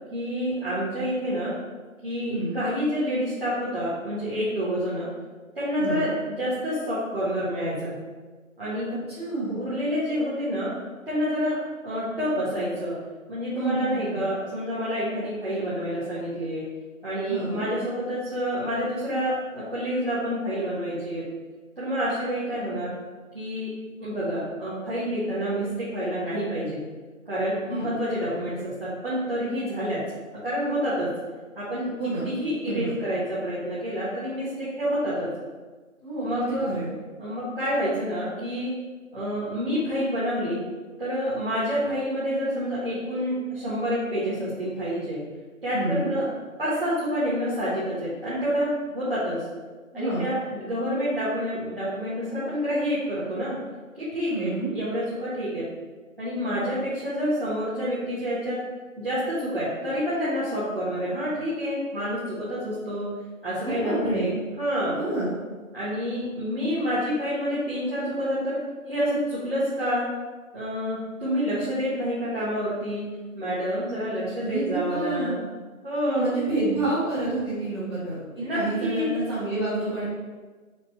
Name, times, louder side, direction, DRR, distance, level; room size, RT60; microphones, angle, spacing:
voice 1, 0.1-1.5 2.0-5.1 5.5-8.0 8.6-8.9 9.5-10.7 11.1-11.6 11.8-13.0 13.3-16.7 17.0-21.3 21.8-22.9 23.3-23.7 24.0-26.8 27.3-30.0 30.4-31.1 31.6-31.9 32.2-35.3 36.2-36.7 37.2-38.7 39.1-40.6 41.0-45.2 45.6-46.2 46.6-49.4 49.9-53.6 54.0-55.7 56.2-58.6 59.0-63.1 63.4-65.0 65.7-68.6 68.9-70.0 70.5-73.0 73.3-75.4 75.8-76.2 78.4-79.1, equal, 40° right, -11 dB, 1.3 m, -28 dB
voice 2, 2.2-2.6 5.7-6.1 8.9-9.6 13.5-14.2 17.2-17.7 27.7-27.9 32.0-32.3 32.6-32.9 36.0-36.9 45.7-46.1 49.9-50.3 54.3-54.7 63.6-64.3 64.9-65.3 74.4-75.4 76.0-80.0, right 2 dB, 20° right, -14 dB, 1.0 m, -29 dB
5.2 x 2.3 x 4.3 m, 1.4 s
figure-of-eight pair, 175°, 41 cm